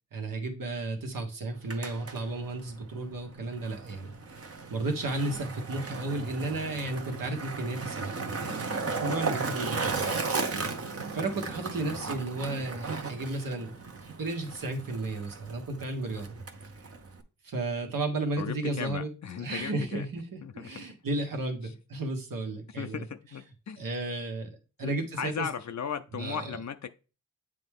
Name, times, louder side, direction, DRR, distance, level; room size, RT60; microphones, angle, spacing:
voice 1, 0.1-4.1 4.4-10.1 11.1-16.4 17.4-19.1 19.4-23.0 23.8-24.5 24.8-25.5 26.1-26.4, right 2 dB, 75° right, 1.4 m, -33 dB
Skateboard, 1.5-17.2, right 4 dB, 45° right, 0.9 m, -36 dB
voice 2, 11.8-12.5 18.4-20.1 20.4-20.9 21.6-21.7 22.8-23.8 24.8-26.9, left 7 dB, 55° left, 0.5 m, -37 dB
7.7 x 3.4 x 3.6 m
cardioid pair, 45°, 34 cm